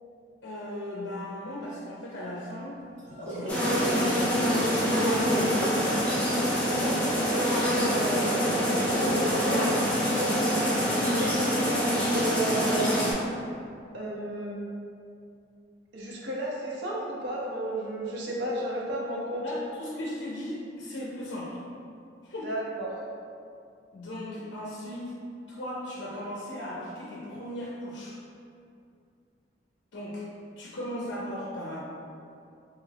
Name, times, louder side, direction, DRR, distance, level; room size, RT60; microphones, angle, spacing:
voice 1, 0.4-2.8 3.3-5.9 19.4-21.6 22.2-22.5 23.9-25.1 25.5-28.2 29.9-30.3 30.6-31.8, left 1 dB, 75° left, -6 dB, 0.5 m, -37 dB
sound 1, 3.0-9.8, right 1 dB, 90° right, 1.0 m, -35 dB
sound 2, 3.5-13.1, equal, 5° left, 0.6 m, -25 dB
voice 2, 7.6-9.8 10.1-11.8 12.2-13.0 13.9-14.6 15.9-19.4 22.4-22.9, right 1 dB, 70° right, -4 dB, 0.6 m, -33 dB
3.2 x 2.3 x 3.3 m, 2.5 s
head